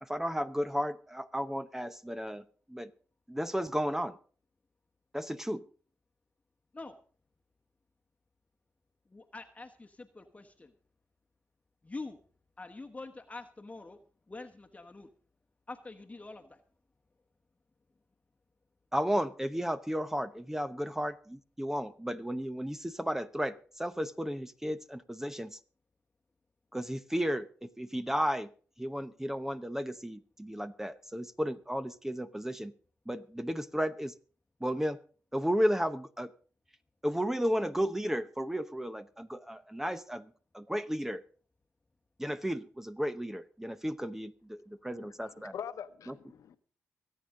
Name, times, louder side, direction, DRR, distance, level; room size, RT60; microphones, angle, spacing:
voice 1, 0.0-2.9 3.3-4.2 5.1-5.6 18.9-25.6 26.7-28.5 28.8-32.7 33.1-34.1 34.6-35.0 35.3-36.3 37.0-40.3 40.5-41.2 42.2-45.5 46.1-46.2, equal, 5° right, 12 dB, 0.8 m, -33 dB
voice 2, 9.1-10.7 11.8-12.2 12.6-14.0 14.3-15.1 15.7-16.6, left 3 dB, 25° left, 5 dB, 1.2 m, -45 dB
voice 3, 44.9-46.6, left 8 dB, 80° left, 10 dB, 1.1 m, -44 dB
23.5 x 8.6 x 3.8 m, 0.42 s
cardioid pair, 65°, 6 cm